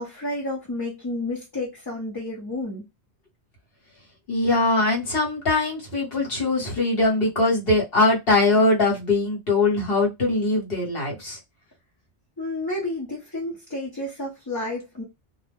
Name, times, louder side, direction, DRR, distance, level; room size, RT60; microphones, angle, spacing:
voice 1, 0.0-2.8 12.4-15.0, left 2 dB, 25° left, 0.7 m, -31 dB
voice 2, 4.3-11.4, left 2 dB, 60° left, 1.3 m, -21 dB
2.4 x 2.1 x 3.4 m
omnidirectional pair, 1.1 m